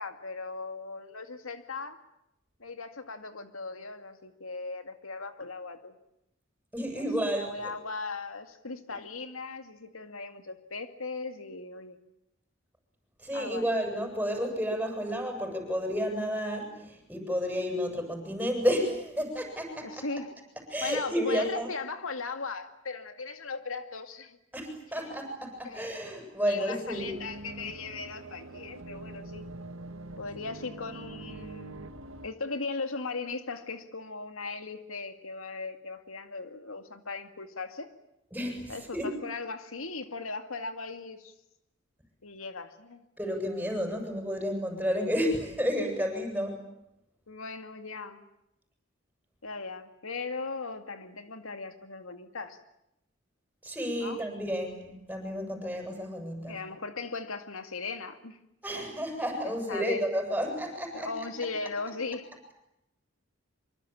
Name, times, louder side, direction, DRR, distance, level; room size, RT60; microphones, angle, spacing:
voice 1, 0.0-2.0 2.6-5.9 7.0-12.0 13.3-13.8 19.8-20.3 20.8-24.4 24.9-25.1 25.6-25.8 26.5-29.5 30.2-31.8 32.2-37.9 38.7-41.3 42.2-43.0 47.3-48.3 49.4-52.6 54.0-54.2 56.5-58.4 59.4-60.1 60.9-62.3, left 4 dB, 90° left, 8 dB, 2.3 m, -38 dB
voice 2, 6.7-7.7 13.2-20.0 20.7-21.7 24.5-27.1 38.3-39.1 43.2-46.6 53.6-56.6 58.6-61.1, equal, 5° right, 3 dB, 7.6 m, -31 dB
sound 1, 26.9-32.3, right 2 dB, 80° right, 2.1 m, -44 dB
26.0 x 24.5 x 8.7 m, 0.83 s
head